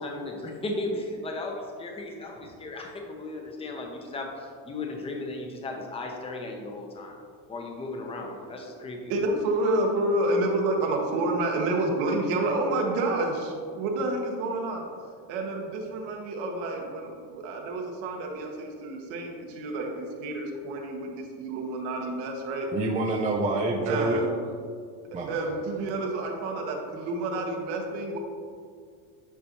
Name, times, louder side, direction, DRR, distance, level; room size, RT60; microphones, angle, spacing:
voice 1, 0.0-7.2 7.5-9.0, left 2 dB, 15° left, 2 dB, 0.7 m, -35 dB
voice 2, 9.1-14.8 15.3-22.7 23.9-24.4 25.3-28.2, right 2 dB, 75° right, 1 dB, 1.3 m, -29 dB
voice 3, 22.7-24.2 25.1-25.5, right 2 dB, 20° right, 0 dB, 0.4 m, -27 dB
9.8 x 4.2 x 3.0 m, 2.1 s
cardioid pair, 135°, 41 cm